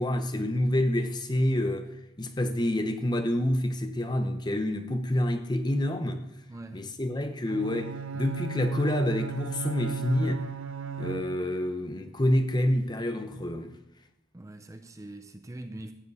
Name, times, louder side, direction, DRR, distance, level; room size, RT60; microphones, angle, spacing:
voice 1, 0.0-1.9 2.2-6.2 6.7-10.5 11.0-13.7, left 1 dB, 20° left, 0.7 m, -27 dB
voice 2, 6.5-6.8 14.3-15.9, right 1 dB, 15° right, 0.5 m, -42 dB
Bowed string instrument, 7.5-11.7, right 7 dB, 85° right, 0.6 m, -36 dB
14.0 x 5.1 x 8.3 m
head